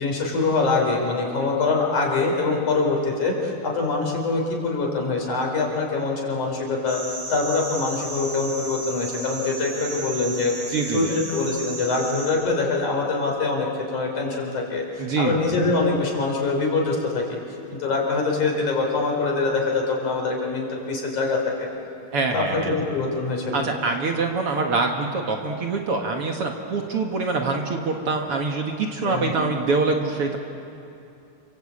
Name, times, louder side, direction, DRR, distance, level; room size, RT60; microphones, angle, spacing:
voice 1, 0.0-7.0 7.3-17.4 17.7-21.7 22.3-23.6 29.1-29.4, left 3 dB, 70° left, 0 dB, 5.9 m, -24 dB
sound 1, 6.9-12.3, right 2 dB, 80° right, 7.2 m, -34 dB
voice 2, 10.7-11.2 15.0-15.4 22.1-22.7 23.5-30.4, right 3 dB, 50° right, 2 dB, 2.1 m, -25 dB
28.5 x 24.0 x 8.6 m, 2.7 s
omnidirectional pair, 3.6 m